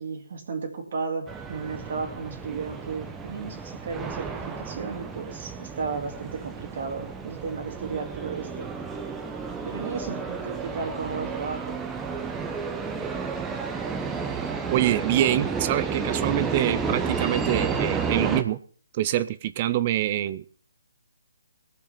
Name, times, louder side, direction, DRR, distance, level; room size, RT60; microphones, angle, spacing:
voice 1, 0.0-8.7 9.6-11.8, right 4 dB, 50° right, 3 dB, 2.2 m, -34 dB
sound 1, 1.3-18.4, right 5 dB, 10° right, 1.0 m, -32 dB
voice 2, 14.7-18.6 18.9-20.4, right 13 dB, 30° right, 16 dB, 0.5 m, -25 dB
18.5 x 7.0 x 5.7 m, 0.43 s
hypercardioid pair, 165°, 0 cm